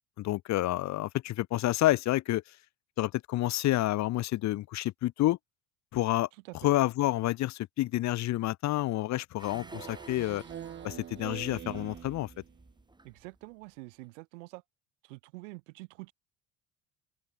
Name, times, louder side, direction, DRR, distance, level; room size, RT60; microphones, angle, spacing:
voice 1, 0.2-2.4 3.0-5.4 5.9-6.3 6.6-10.4 10.8-12.3, left 15 dB, 50° left, 0.6 m, -29 dB
sound 1, 9.4-13.6 14.0-14.1, right 2 dB, 10° right, 7.7 m, -51 dB
Speech synthesizer, 9.5-12.6, right 10 dB, 30° right, 0.6 m, -44 dB
voice 2, 13.0-14.6 15.0-16.1, right 25 dB, 85° right, 1.0 m, -46 dB
open air
supercardioid pair, 75°, 36 cm